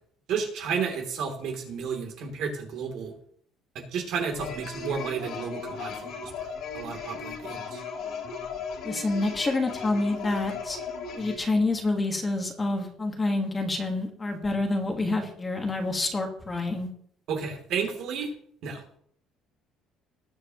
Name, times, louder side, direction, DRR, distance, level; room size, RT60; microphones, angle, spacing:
voice 1, 0.3-3.1 3.7-6.5 6.7-7.8 17.3-18.3 18.6-18.8, right 6 dB, 55° right, 2 dB, 2.9 m, -32 dB
sound 1, 4.3-11.4, left 5 dB, 55° left, 3.0 m, -37 dB
voice 2, 8.8-10.8 11.2-16.9, left 2 dB, 15° left, 3 dB, 1.5 m, -27 dB
19.5 x 8.0 x 3.0 m, 0.63 s
cardioid pair, 170°, 0 cm